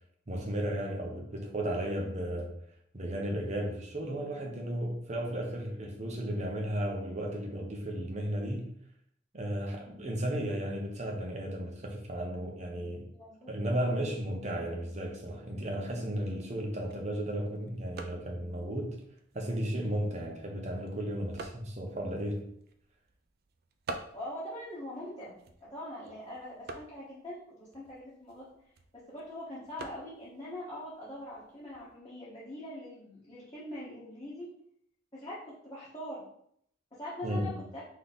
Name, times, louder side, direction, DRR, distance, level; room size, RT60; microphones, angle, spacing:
voice 1, 0.3-2.5 2.9-8.7 9.3-13.1 13.5-19.0 19.3-22.5 37.2-37.6, right 1 dB, 35° right, 1 dB, 0.9 m, -34 dB
voice 2, 13.1-13.5 24.1-28.5 28.9-34.5 35.1-36.2 36.9-37.8, left 1 dB, 20° left, -10 dB, 1.1 m, -43 dB
sound 1, 16.4-32.0, right 3 dB, 55° right, 0.4 m, -50 dB
3.6 x 3.2 x 4.0 m, 0.69 s
head